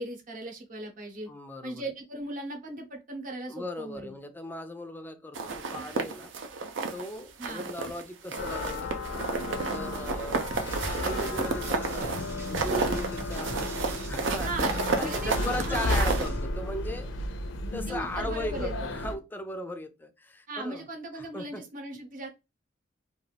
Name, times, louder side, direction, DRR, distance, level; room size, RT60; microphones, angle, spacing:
voice 1, 0.0-1.3 1.6-4.2 7.4-7.7 14.4-14.7 15.0-16.1 17.9-19.0 20.5-22.3, right 2 dB, 45° right, 0.8 m, -38 dB
voice 2, 1.3-1.8 3.5-6.3 6.9-9.3 9.7-10.5 11.0-14.7 15.0-17.1 17.7-20.9 21.1-21.6, left 1 dB, 10° left, 0.3 m, -38 dB
sound 1, 5.3-7.1 7.4-8.0 8.3-16.3, right 4 dB, 80° right, 0.5 m, -31 dB
sound 2, 8.4-19.2, left 2 dB, 75° left, 0.5 m, -33 dB
sound 3, 10.5-16.5, right 1 dB, 15° right, 0.7 m, -45 dB
2.4 x 2.4 x 3.2 m
head